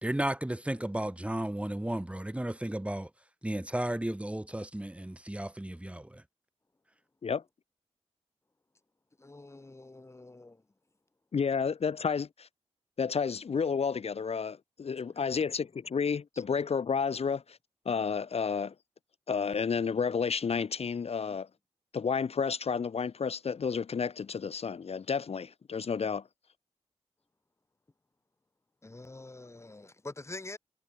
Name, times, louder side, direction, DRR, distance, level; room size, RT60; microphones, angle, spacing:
voice 1, 0.0-3.1 3.4-6.1, right 1 dB, 10° right, 1.5 m, -33 dB
voice 2, 9.2-10.6 15.1-15.2 28.8-30.6, left 2 dB, 25° left, 1.6 m, -46 dB
voice 3, 11.3-12.5 13.0-17.6 17.8-18.7 19.3-21.5 21.9-26.2, left 6 dB, 65° left, 1.1 m, -31 dB
wide cardioid pair, 90°, 11 cm